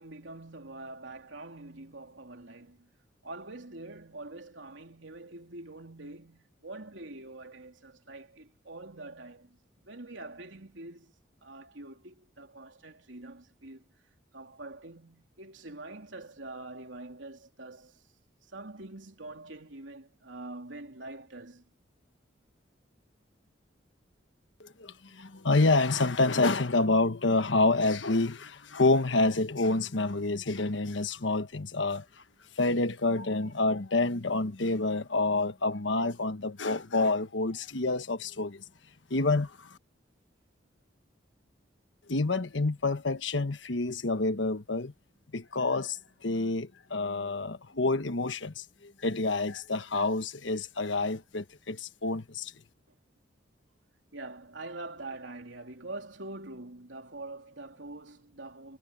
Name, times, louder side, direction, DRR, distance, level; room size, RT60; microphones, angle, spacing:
voice 1, 0.0-2.9 3.2-9.6 9.9-13.9 14.3-18.0 18.5-21.6 52.9-53.0 54.1-58.8, right 2 dB, 85° right, 3.3 m, -45 dB
voice 2, 24.6-32.0 32.6-38.6 39.1-39.8 42.1-44.9 45.3-52.5, left 3 dB, 80° left, 1.3 m, -28 dB
head